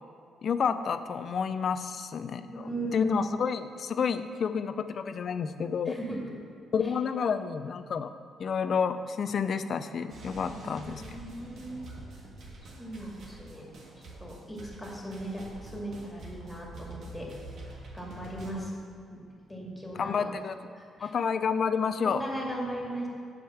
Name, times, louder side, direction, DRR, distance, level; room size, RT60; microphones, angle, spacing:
voice 1, 0.4-2.7 2.9-6.0 6.7-8.1 8.4-11.2 20.0-20.5 21.0-22.2, left 6 dB, 55° left, 11 dB, 0.5 m, -30 dB
voice 2, 2.5-3.3 5.9-6.2 6.8-6.9 10.5-11.8 12.8-13.7 14.2-17.3 17.9-18.7 19.1-19.2 19.5-20.3 20.7-21.1 22.0-23.1, right 1 dB, 10° left, -2 dB, 2.2 m, -37 dB
sound 1, 10.1-18.5, right 2 dB, 65° right, 1.6 m, -46 dB
7.9 x 5.1 x 7.2 m, 2.4 s
cardioid pair, 90°, 0 cm